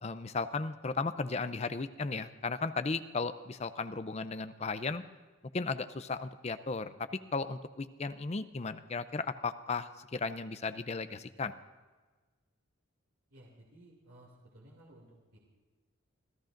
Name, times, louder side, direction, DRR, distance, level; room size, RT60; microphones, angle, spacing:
voice 1, 0.0-5.0 5.5-11.5, left 4 dB, 30° left, 11 dB, 0.5 m, -35 dB
voice 2, 13.3-15.4, right 1 dB, 90° right, -3 dB, 2.7 m, -57 dB
27.0 x 14.5 x 2.6 m, 1.4 s
head